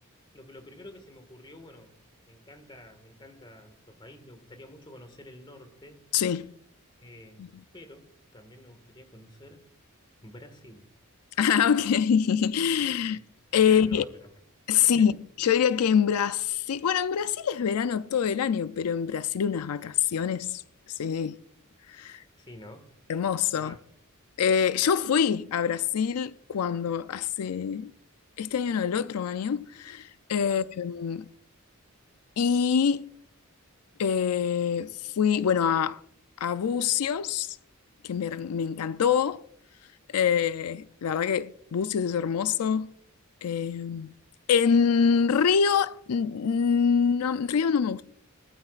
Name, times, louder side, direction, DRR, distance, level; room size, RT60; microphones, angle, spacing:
voice 1, 0.3-1.9 2.3-6.0 7.0-7.4 7.7-9.6 10.2-10.9 13.1-13.2 13.6-14.3 14.8-15.1 22.4-22.9 23.6-23.8 30.5-30.7, left 1 dB, 20° left, 1.7 m, -49 dB
voice 2, 6.1-6.5 7.4-7.5 11.4-13.2 13.5-14.0 14.7-20.6 20.9-21.4 21.9-22.2 23.1-23.8 24.4-27.9 28.4-31.3 32.4-33.0 34.0-36.0 36.4-37.6 38.0-39.4 40.1-42.9 43.4-44.1 44.5-48.0, left 7 dB, 90° left, 0.4 m, -25 dB
19.0 x 13.0 x 2.4 m
head